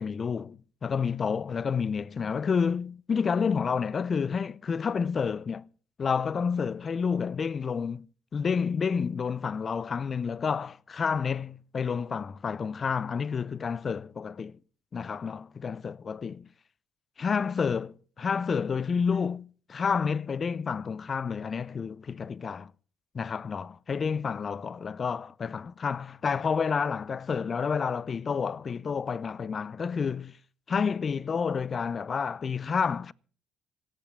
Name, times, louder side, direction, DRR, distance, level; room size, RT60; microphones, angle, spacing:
voice 1, 0.0-5.7 6.0-8.1 8.3-14.6 14.9-16.5 17.2-22.7 23.1-30.4 30.7-33.1, left 6 dB, 40° left, 0.6 m, -29 dB
26.5 x 10.0 x 3.6 m
supercardioid pair, 65°, 0 cm